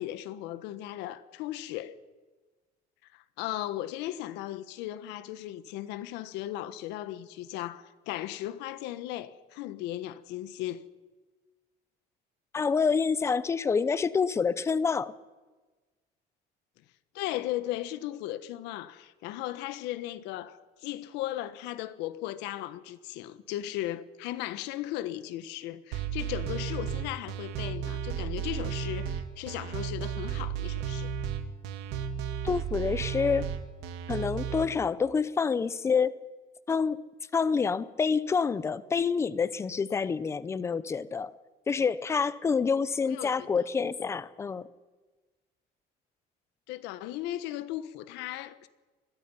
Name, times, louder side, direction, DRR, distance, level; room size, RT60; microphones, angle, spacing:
voice 1, 0.0-1.9 3.1-10.8 17.1-31.1 43.1-43.5 46.7-48.7, left 14 dB, 85° left, 1.4 m, -36 dB
voice 2, 12.5-15.1 32.4-33.5 34.1-36.2 36.7-37.0 37.3-41.3 41.7-44.6, left 5 dB, 15° left, 0.6 m, -27 dB
sound 1, 25.9-34.6, right 8 dB, 90° right, 2.1 m, -34 dB
27.5 x 21.0 x 5.7 m
cardioid pair, 180°, 17 cm